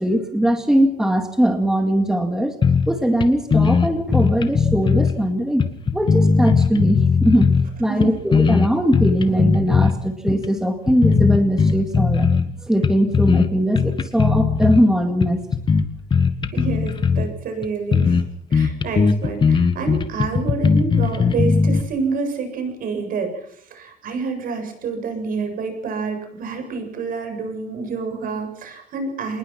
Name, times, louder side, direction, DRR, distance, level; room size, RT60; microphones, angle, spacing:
voice 1, 0.0-2.6 2.9-5.6 5.9-7.5 7.8-12.4 12.6-15.4, equal, 5° right, 5 dB, 2.0 m, -20 dB
sound 1, 2.6-3.0 3.2-3.3 3.5-5.2 5.6-7.7 8.0-9.9 10.3-10.5 10.9-12.5 12.8-13.5 13.8-14.8 15.2-17.3 17.6-17.7 17.9-18.2 18.5-21.8, left 5 dB, 30° left, 1.7 m, -18 dB
voice 2, 16.5-18.2 18.5-23.5 23.7-29.4, right 4 dB, 60° right, 6 dB, 7.6 m, -28 dB
27.0 x 20.5 x 5.9 m, 0.69 s
cardioid pair, 165°, 17 cm